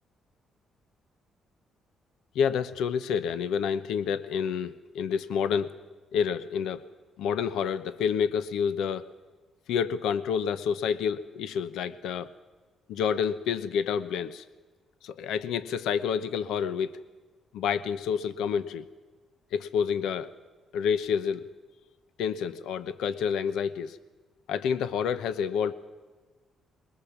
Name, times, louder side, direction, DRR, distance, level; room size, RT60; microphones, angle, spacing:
voice 1, 2.3-5.8 6.1-6.9 7.2-9.1 9.7-12.3 12.9-14.4 15.0-17.0 17.5-18.8 19.5-20.3 20.7-21.4 22.2-24.0 24.5-25.7, left 7 dB, 85° left, 13 dB, 0.9 m, -28 dB
21.5 x 21.0 x 7.3 m, 1.3 s
cardioid pair, 90°, 0 cm